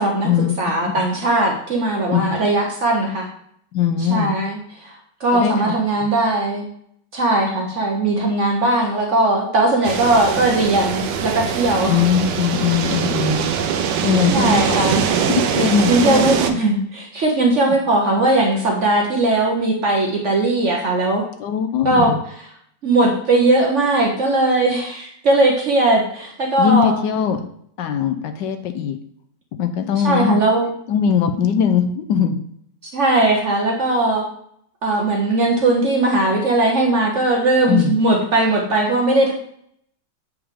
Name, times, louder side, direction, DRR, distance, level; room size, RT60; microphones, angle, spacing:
voice 1, 0.6-3.3 4.0-4.9 5.2-6.7 7.1-12.0 14.3-15.1 15.9-21.3 21.8-22.1 22.8-26.9 30.0-30.7 32.8-34.2 34.8-39.3, right 2 dB, 55° right, 0 dB, 0.9 m, -18 dB
voice 2, 2.1-2.4 3.7-4.3 5.3-5.7 11.9-13.5 14.0-14.9 15.2-16.6 21.4-22.2 26.6-27.4 27.8-29.0 29.6-30.4 30.9-32.4 37.7-38.0, left 7 dB, 75° left, 8 dB, 1.2 m, -20 dB
sound 1, 9.8-16.5, right 7 dB, 70° right, 1.2 m, -22 dB
7.9 x 3.4 x 3.6 m, 0.68 s
omnidirectional pair, 2.0 m